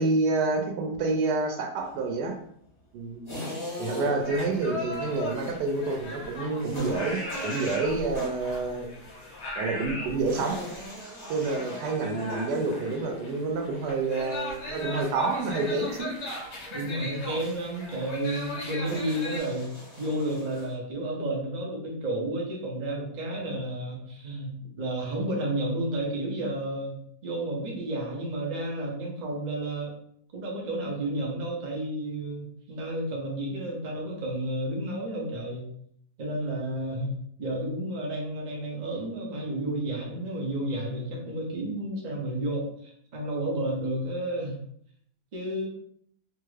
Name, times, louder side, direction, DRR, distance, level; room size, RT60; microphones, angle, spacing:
voice 1, 0.0-2.4 2.9-3.2 3.8-8.9 9.6-10.6 11.3-16.1, right 3 dB, 90° right, 3 dB, 1.2 m, -28 dB
sound 1, 3.3-4.4 6.6-8.5 10.2-13.1 15.6-15.9 18.8-20.7, left 1 dB, 20° left, 1.1 m, -40 dB
sound 2, 4.2-19.4, left 1 dB, 50° left, 0.9 m, -38 dB
voice 2, 16.7-29.9 30.3-35.7 36.2-37.1 37.4-44.6 45.3-45.7, right 1 dB, 45° right, -1 dB, 0.5 m, -31 dB
2.9 x 2.4 x 3.1 m, 0.67 s
omnidirectional pair, 1.8 m